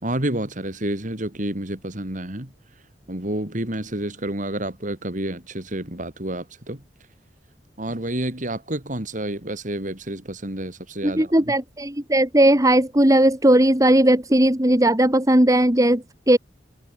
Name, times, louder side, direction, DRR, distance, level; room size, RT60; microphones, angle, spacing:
voice 1, 0.0-2.5 3.1-6.8 7.8-11.5, right 1 dB, 45° right, 3.6 m, -29 dB
voice 2, 11.0-16.4, right 1 dB, 20° right, 2.6 m, -17 dB
head